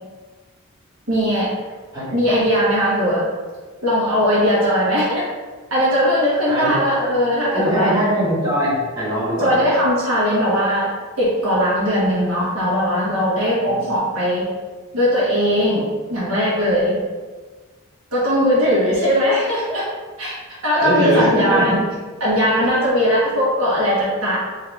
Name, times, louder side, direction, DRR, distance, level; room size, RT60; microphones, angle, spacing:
voice 1, 1.1-1.5 2.1-3.2 3.8-5.2 5.7-8.0 9.4-10.9 11.2-14.5 14.9-16.9 18.1-19.8 20.2-20.3 20.6-21.8 22.2-24.4, equal, 80° right, -6 dB, 1.2 m, -19 dB
voice 2, 6.5-6.8 7.5-9.6 13.6-13.9 20.8-21.8, equal, 20° right, -10 dB, 1.4 m, -21 dB
3.8 x 2.7 x 3.5 m, 1.4 s
head